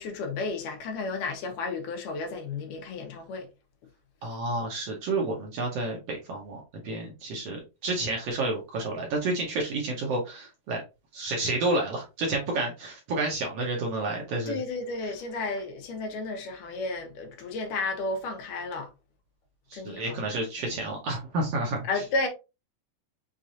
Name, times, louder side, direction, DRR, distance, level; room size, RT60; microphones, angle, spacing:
voice 1, 0.0-3.5 14.5-18.9 19.7-20.2 21.9-22.3, left 3 dB, 85° left, 2.7 m, -32 dB
voice 2, 4.2-10.8 11.1-14.6 19.7-21.9, right 2 dB, 65° right, 1.6 m, -30 dB
6.2 x 2.5 x 2.7 m
omnidirectional pair, 3.6 m